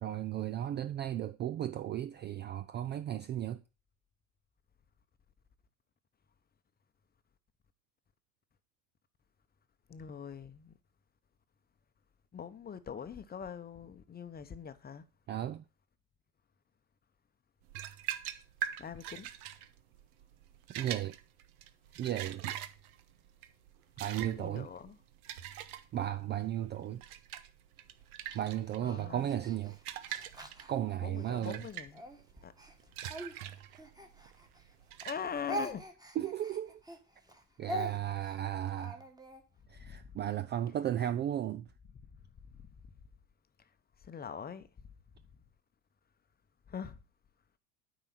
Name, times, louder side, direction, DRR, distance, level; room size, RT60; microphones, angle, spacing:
voice 1, 0.0-3.6 15.3-15.6 20.7-21.1 22.0-22.4 24.0-24.7 25.9-27.0 28.3-29.8 30.7-31.6 36.2-36.8 37.6-39.0 39.7-41.7, right 11 dB, 25° right, 0.3 m, -35 dB
voice 2, 9.9-10.8 12.3-15.0 18.8-19.3 24.2-24.9 28.8-29.3 31.0-32.0 32.4-32.5 35.0-35.9 39.8-40.2 42.6-42.7 44.0-44.7 46.7-47.0, left 7 dB, 20° left, 0.8 m, -42 dB
sound 1, 17.7-35.8, right 11 dB, 75° right, 1.0 m, -44 dB
Speech, 28.2-31.4 31.9-34.7 35.0-39.4, left 1 dB, 10° right, 1.6 m, -44 dB
9.1 x 4.9 x 5.8 m
hypercardioid pair, 90°, 44 cm